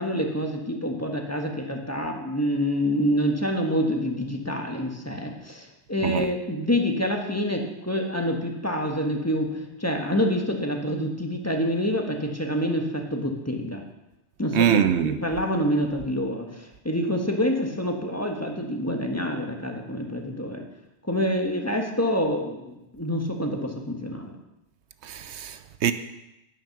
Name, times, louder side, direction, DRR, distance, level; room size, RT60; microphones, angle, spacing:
voice 1, 0.0-13.8 14.4-20.6 21.0-24.4, equal, 15° left, 1.3 m, -27 dB
voice 2, 14.5-15.2 25.0-25.9, right 9 dB, 80° right, 0.9 m, -23 dB
10.0 x 9.0 x 5.9 m
omnidirectional pair, 1.2 m